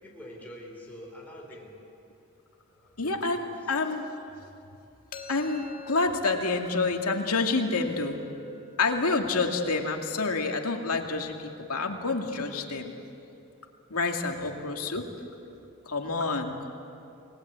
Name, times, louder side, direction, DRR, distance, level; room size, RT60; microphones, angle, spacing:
voice 1, 0.0-1.8 2.7-3.5 14.4-14.5, equal, 5° left, -2 dB, 4.3 m, -46 dB
voice 2, 3.0-4.0 5.3-8.2 8.8-12.9 13.9-15.1 15.9-16.7, left 3 dB, 90° left, 3 dB, 2.4 m, -28 dB
sound 1, 5.1-10.9, left 2 dB, 40° left, 1.5 m, -49 dB
28.0 x 19.5 x 8.3 m, 2.7 s
head